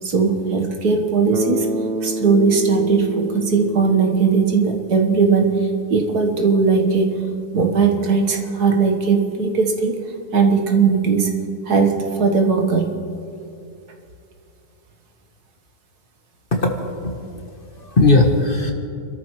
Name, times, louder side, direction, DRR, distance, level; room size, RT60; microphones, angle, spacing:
voice 1, 0.0-1.7 2.0-7.2 7.5-10.0 10.3-11.3 11.7-12.9, right 5 dB, 70° right, 3 dB, 1.9 m, -18 dB
Bass guitar, 1.3-5.3, right 2 dB, 50° right, 0.7 m, -29 dB
voice 2, 16.5-17.1 17.7-18.7, left 2 dB, 35° left, 2 dB, 1.4 m, -17 dB
29.0 x 13.5 x 3.2 m, 2.5 s
omnidirectional pair, 1.7 m